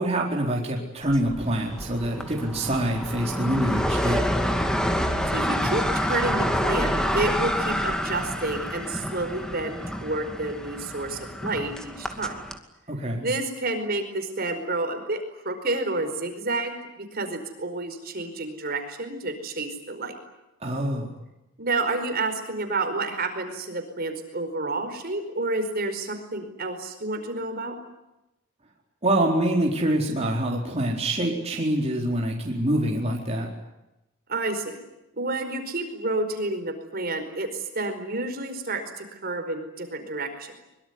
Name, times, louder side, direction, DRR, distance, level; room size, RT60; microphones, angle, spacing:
voice 1, 0.0-4.2 12.9-13.3 20.6-21.1 29.0-33.5, right 1 dB, 30° right, -1 dB, 4.3 m, -25 dB
sound 1, 1.1-12.6, equal, 5° left, 2.4 m, -28 dB
voice 2, 5.3-12.4 13.2-20.1 21.6-27.7 34.3-34.8 35.2-40.6, right 2 dB, 50° right, 7 dB, 4.8 m, -30 dB
24.5 x 23.0 x 9.6 m, 0.93 s
head